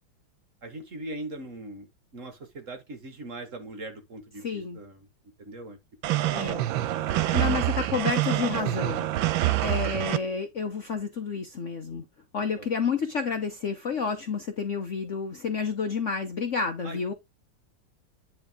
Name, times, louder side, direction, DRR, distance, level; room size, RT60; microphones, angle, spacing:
voice 1, 0.6-5.1 5.4-5.8 6.1-6.3 7.1-7.6 12.6-12.7 16.8-17.1, right 2 dB, 45° right, 1.6 m, -40 dB
voice 2, 4.4-4.8 6.3-6.6 7.3-9.1 9.6-12.0 12.3-17.1, left 5 dB, 50° left, 0.9 m, -30 dB
sound 1, 6.0-10.2, right 15 dB, 85° right, 1.5 m, -26 dB
10.0 x 3.6 x 3.6 m
omnidirectional pair, 2.1 m